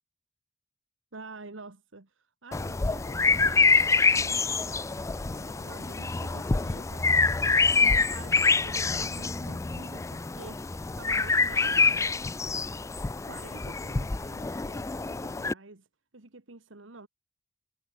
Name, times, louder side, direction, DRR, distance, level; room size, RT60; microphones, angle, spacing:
voice 1, 1.1-4.9 5.2-12.7 13.3-15.9 16.1-17.1, right 3 dB, 85° right, 1.6 m, -48 dB
sound 1, 2.5-15.5, left 4 dB, 15° left, 0.4 m, -26 dB
head